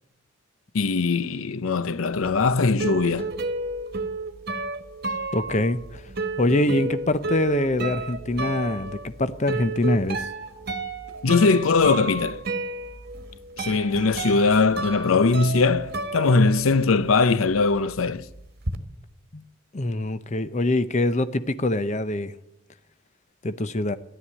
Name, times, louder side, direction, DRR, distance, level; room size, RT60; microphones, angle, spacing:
voice 1, 0.7-3.3 11.2-12.4 13.6-18.2, left 4 dB, 90° left, 0.6 m, -21 dB
sound 1, 2.2-17.0 17.3-18.8, right 3 dB, 50° right, 1.4 m, -32 dB
voice 2, 5.3-6.1 6.4-10.3 19.3-19.4 19.7-22.3 23.4-24.0, left 1 dB, 35° left, 0.7 m, -24 dB
14.0 x 11.5 x 8.5 m
head